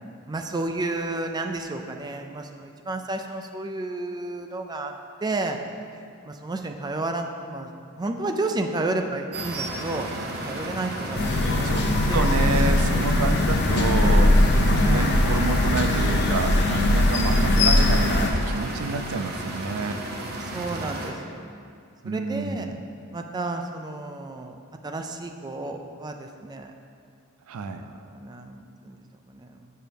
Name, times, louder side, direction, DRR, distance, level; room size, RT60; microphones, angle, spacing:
voice 1, 0.3-4.9 5.2-5.6 6.2-7.7 8.0-10.1 10.4-11.7 12.1-12.6 14.7-15.5 20.5-21.4 22.0-22.7 23.1-24.6 24.8-26.7 27.8-29.0 29.3-29.6, right 2 dB, 20° right, 5 dB, 0.4 m, -31 dB
sound 1, 9.3-21.1, right 1 dB, 50° right, 0.7 m, -34 dB
sound 2, 11.2-18.3, left 1 dB, 50° left, 0.6 m, -20 dB
voice 2, 11.6-14.4 14.7-20.0 22.0-22.8 27.5-27.8, right 4 dB, 90° right, 8 dB, 0.4 m, -29 dB
6.2 x 4.5 x 5.1 m, 2.3 s
head